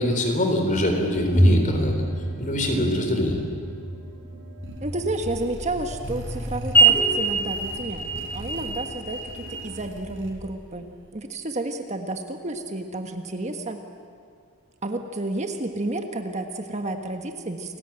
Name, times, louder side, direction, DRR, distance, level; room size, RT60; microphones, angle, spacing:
voice 1, 0.0-1.9 2.4-3.4, left 1 dB, 35° left, 4 dB, 4.0 m, -23 dB
sound 1, 1.1-9.6, right 2 dB, 10° left, 3.7 m, -25 dB
sound 2, 4.6-10.7, right 1 dB, 60° right, 5.1 m, -40 dB
voice 2, 4.8-9.2 9.5-13.8 14.8-17.8, right 2 dB, 30° right, 5 dB, 1.4 m, -31 dB
29.5 x 20.0 x 8.9 m, 2.4 s
head